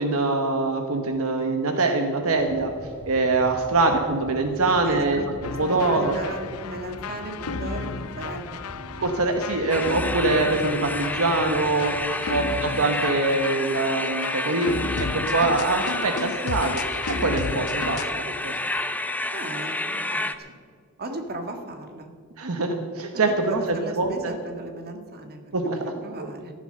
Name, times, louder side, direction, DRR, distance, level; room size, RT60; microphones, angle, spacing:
voice 1, 0.0-2.7 3.1-5.2 5.5-6.2 9.0-11.9 12.3-16.7 17.2-18.5 22.4-24.3 25.5-25.9 26.2-26.3, right 3 dB, 70° right, 5 dB, 1.2 m, -24 dB
sound 1, 2.2-12.0, equal, 25° right, 3.0 m, -43 dB
voice 2, 4.6-5.3 5.7-8.7 12.1-12.4 18.2-18.7 19.3-20.3 21.0-22.1 23.1-26.5, right 1 dB, 45° right, 5 dB, 1.7 m, -37 dB
sound 2, 5.4-18.1, left 4 dB, 70° left, 0.6 m, -34 dB
sound 3, 9.7-20.3, left 2 dB, 5° left, 0.6 m, -30 dB
14.0 x 11.5 x 6.6 m, 2.1 s
head